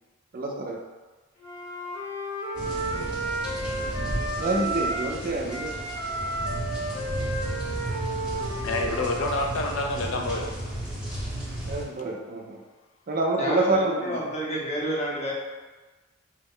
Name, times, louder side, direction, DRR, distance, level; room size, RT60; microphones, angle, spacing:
voice 1, 0.3-0.8 4.4-5.8 11.7-12.6 13.1-14.2, right 2 dB, 45° right, 1 dB, 0.4 m, -27 dB
Wind instrument woodwind instrument, 1.4-5.2 5.5-9.3, right 2 dB, 65° left, 0.9 m, -32 dB
sound 1, 2.5-11.8, right 1 dB, 5° right, 0.8 m, -34 dB
voice 2, 8.0-10.5, left 2 dB, 85° left, 2 dB, 0.4 m, -29 dB
voice 3, 13.4-15.3, equal, 35° left, -4 dB, 0.7 m, -29 dB
3.0 x 2.0 x 3.7 m, 1.2 s
head